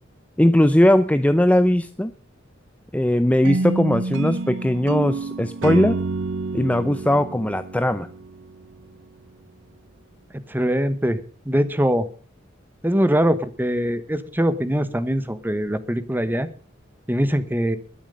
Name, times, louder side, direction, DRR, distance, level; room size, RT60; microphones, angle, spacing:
voice 1, 0.4-2.1 2.9-6.0 6.5-8.1, left 1 dB, 5° left, 11 dB, 0.5 m, -19 dB
sound 1, 3.4-8.6, right 3 dB, 70° right, 0.5 m, -28 dB
voice 2, 10.5-11.2 11.4-12.1 12.8-16.5 17.1-17.8, equal, 10° right, 12 dB, 1.1 m, -22 dB
21.0 x 7.3 x 5.3 m, 0.41 s
head